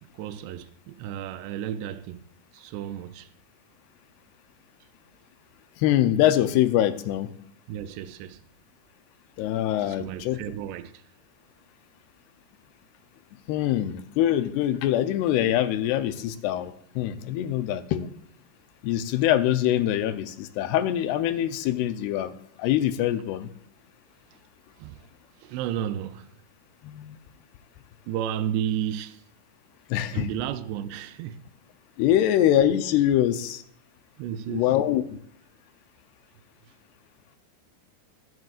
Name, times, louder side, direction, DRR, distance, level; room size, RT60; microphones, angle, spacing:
voice 1, 0.0-2.3 2.5-3.3 7.7-8.4 9.8-11.0 24.3-24.4 24.8-25.1 25.4-26.4 28.1-29.2 30.1-31.4 34.2-34.7, right 10 dB, 90° right, 2.7 m, -33 dB
voice 2, 5.8-7.3 9.4-10.4 13.5-18.1 18.8-22.3 22.6-23.5 26.8-27.2 29.9-30.3 32.0-33.6 34.5-35.0, left 12 dB, 80° left, 2.6 m, -24 dB
21.5 x 7.9 x 2.4 m
omnidirectional pair, 4.8 m